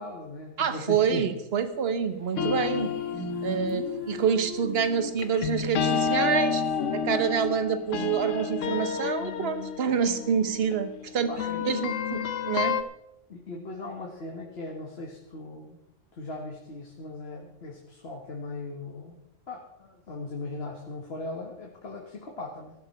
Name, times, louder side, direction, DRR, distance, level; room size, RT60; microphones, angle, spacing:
voice 1, 0.0-1.3 11.3-11.6 13.3-15.8 16.1-19.2 19.5-22.7, left 2 dB, 55° left, 0 dB, 1.7 m, -38 dB
voice 2, 0.6-2.9 3.4-6.6 6.9-11.3 11.6-12.8, right 7 dB, 55° right, 11 dB, 1.2 m, -27 dB
sound 1, 2.4-12.8, left 7 dB, 75° left, 1.1 m, -30 dB
sound 2, 2.4-2.5 2.7-6.7, right 6 dB, 80° right, 2.0 m, -40 dB
14.5 x 12.5 x 4.3 m, 0.87 s
omnidirectional pair, 1.3 m